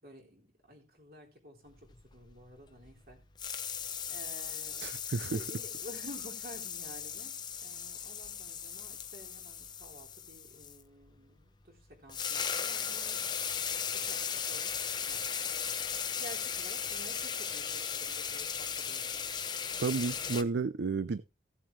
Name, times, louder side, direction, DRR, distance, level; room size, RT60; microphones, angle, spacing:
voice 1, 0.0-3.2 4.1-4.9 5.3-13.3 13.9-15.4 16.2-19.3, equal, 55° right, 3.8 m, -52 dB
sound 1, 1.9-3.1 3.4-10.8 11.8-11.9 12.1-20.4, left 7 dB, 25° left, 0.7 m, -37 dB
voice 2, 4.8-5.4 19.8-21.2, right 4 dB, 70° right, 0.4 m, -32 dB
16.5 x 7.4 x 3.2 m
head